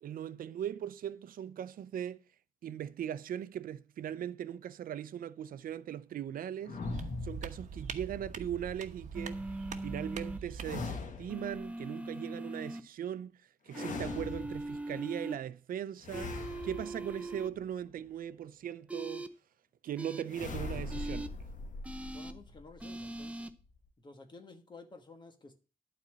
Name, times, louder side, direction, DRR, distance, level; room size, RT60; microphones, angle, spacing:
voice 1, 0.0-2.2 2.6-6.8 7.2-9.4 9.8-13.3 13.6-19.3 19.8-21.3, right 10 dB, 85° right, 0.6 m, -39 dB
sound 1, 6.6-8.2 10.6-11.6 13.7-14.9 16.0-17.8 20.3-23.9, left 3 dB, 65° left, 1.4 m, -42 dB
sound 2, 6.8-10.9, right 6 dB, 60° right, 1.1 m, -43 dB
sound 3, 9.1-10.4 11.3-12.8 13.7-15.4 16.1-17.5 18.9-19.3 20.0-20.2 20.9-21.3 21.8-22.3 22.8-23.5, right 2 dB, 10° right, 0.7 m, -40 dB
voice 2, 22.1-23.5 24.0-25.6, left 3 dB, 30° left, 1.5 m, -53 dB
12.0 x 4.3 x 7.4 m
wide cardioid pair, 140°, 14 cm